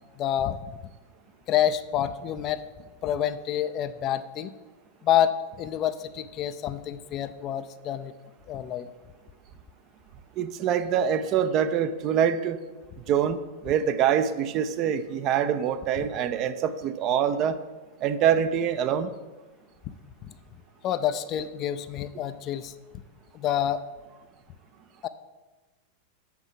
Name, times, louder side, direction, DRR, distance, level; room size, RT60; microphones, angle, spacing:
voice 1, 0.2-0.6 1.5-2.6 3.0-4.5 5.0-8.1 8.5-8.9 20.8-22.7 23.3-23.8 25.0-25.1, left 10 dB, 35° left, 12 dB, 0.5 m, -27 dB
voice 2, 10.4-12.6 13.1-13.4 13.6-17.6 18.0-19.1, right 8 dB, 35° right, 11 dB, 0.5 m, -25 dB
7.1 x 5.9 x 7.4 m, 1.2 s
figure-of-eight pair, 90°, 0 cm